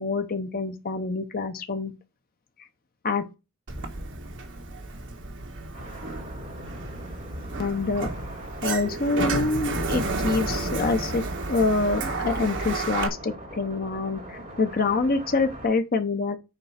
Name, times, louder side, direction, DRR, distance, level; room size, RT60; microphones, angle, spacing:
voice 1, 0.0-1.9 3.0-3.3 7.6-8.1 8.6-16.4, left 3 dB, 45° left, 0.8 m, -26 dB
Sliding door, 3.7-13.1, right 2 dB, 60° right, 1.3 m, -31 dB
sound 1, 5.7-15.7, right 1 dB, 30° right, 4.4 m, -42 dB
6.7 x 4.5 x 5.7 m
head